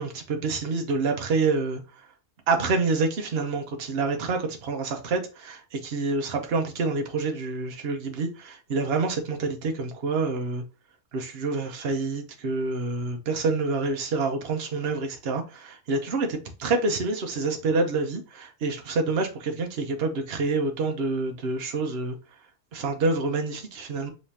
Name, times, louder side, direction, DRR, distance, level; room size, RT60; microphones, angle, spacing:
voice 1, 0.0-1.8 2.5-10.6 11.1-22.2 22.7-24.1, right 3 dB, 65° right, 1.0 m, -27 dB
5.2 x 3.2 x 2.8 m
omnidirectional pair, 1.1 m